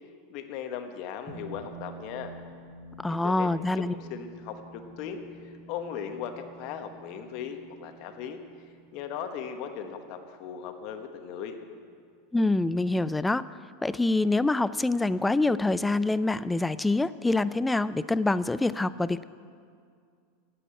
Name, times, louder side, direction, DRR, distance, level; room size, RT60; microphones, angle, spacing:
voice 1, 0.3-2.3 3.1-8.4 8.9-11.6, left 8 dB, 55° left, 7 dB, 1.2 m, -38 dB
sound 1, 1.3-12.0, right 2 dB, 10° right, 3.7 m, -49 dB
voice 2, 3.0-3.9 12.3-13.4 13.8-19.2, left 2 dB, 10° left, 16 dB, 0.3 m, -25 dB
10.0 x 7.8 x 8.9 m, 2.2 s
hypercardioid pair, 105°, 0 cm